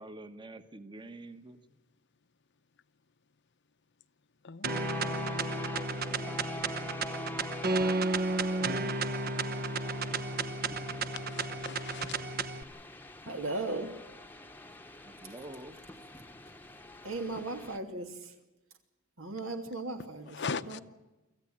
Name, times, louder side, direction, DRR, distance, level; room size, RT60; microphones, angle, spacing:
voice 1, 0.0-1.6 5.9-6.6 8.6-8.9 15.1-15.8, right 1 dB, 25° right, 1.2 m, -47 dB
voice 2, 4.4-5.1 11.3-12.2 20.3-20.8, left 5 dB, 60° left, 0.8 m, -39 dB
sound 1, 4.6-12.6, right 3 dB, 50° right, 1.0 m, -33 dB
sound 2, 4.7-17.8, left 1 dB, 10° left, 1.0 m, -44 dB
voice 3, 13.2-13.9 17.0-18.3 19.2-20.8, right 2 dB, 80° right, 2.9 m, -37 dB
25.0 x 15.0 x 8.8 m
head